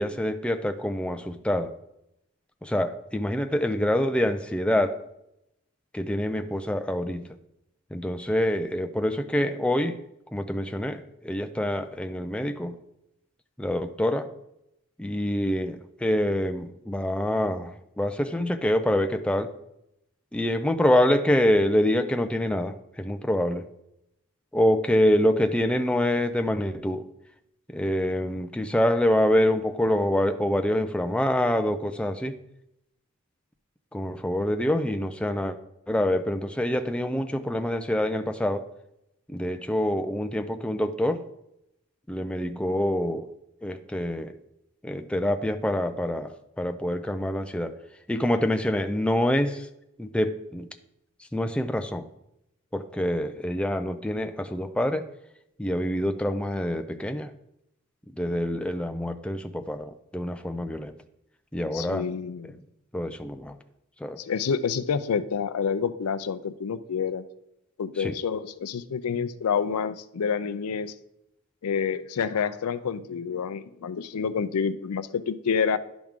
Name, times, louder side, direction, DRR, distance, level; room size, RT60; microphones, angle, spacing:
voice 1, 0.0-1.7 2.6-5.0 5.9-7.3 7.9-10.0 10.3-12.8 13.6-14.3 15.0-19.5 20.3-23.7 24.5-27.0 27.7-32.4 33.9-35.6 35.9-38.7 39.3-41.2 42.1-43.3 43.6-44.3 44.8-47.7 48.1-49.7 50.0-50.7 51.3-52.0 52.7-55.0 55.6-57.3 58.2-61.0 61.5-62.1 62.9-63.6 64.0-64.2 68.0-68.2, left 1 dB, 5° left, 7 dB, 0.3 m, -26 dB
voice 2, 61.7-62.6 64.2-67.2 67.8-70.9 71.6-75.8, left 6 dB, 90° left, 14 dB, 0.4 m, -28 dB
10.5 x 6.1 x 3.6 m, 0.83 s
head